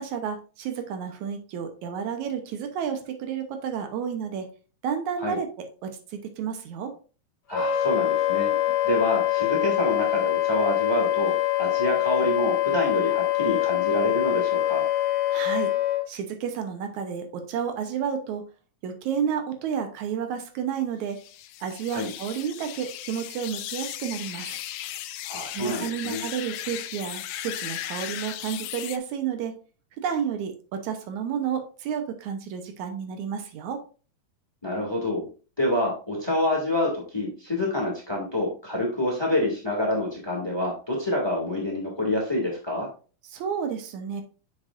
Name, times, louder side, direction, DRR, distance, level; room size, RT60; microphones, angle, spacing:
voice 1, 0.0-4.5 4.8-6.9 8.5-8.6 15.3-15.7 16.1-18.4 18.8-21.2 21.6-24.6 25.5-29.5 30.0-33.8 43.3-44.2, right 8 dB, 80° right, 6 dB, 2.2 m, -31 dB
Wind instrument woodwind instrument, 7.5-16.0, left 14 dB, 70° left, 2.2 m, -24 dB
voice 2, 7.5-8.5 8.8-14.9 21.9-22.1 25.2-26.2 34.6-35.3 35.6-42.9, left 1 dB, 10° left, -2 dB, 1.8 m, -27 dB
sound 1, 21.1-29.0, left 13 dB, 85° left, 2.0 m, -36 dB
8.5 x 6.2 x 2.5 m, 0.36 s
omnidirectional pair, 3.4 m